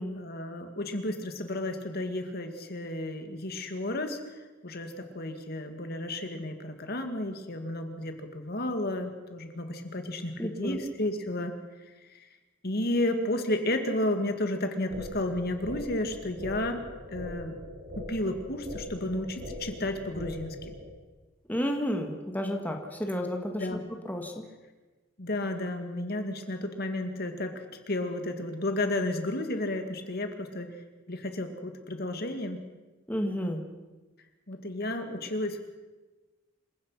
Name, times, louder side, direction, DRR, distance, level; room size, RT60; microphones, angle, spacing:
voice 1, 0.2-4.2 4.6-11.5 12.0-12.3 12.6-16.8 17.1-17.6 18.0-20.7 23.6-23.9 25.2-30.8 31.1-32.6 34.5-35.6, left 1 dB, 55° left, 6 dB, 2.3 m, -32 dB
voice 2, 10.4-10.8 21.5-23.8 24.1-24.4 33.1-33.6, equal, 10° left, 3 dB, 1.9 m, -31 dB
sound 1, 14.9-20.9, equal, 80° right, 6.3 m, -41 dB
27.5 x 16.5 x 5.8 m, 1.2 s
head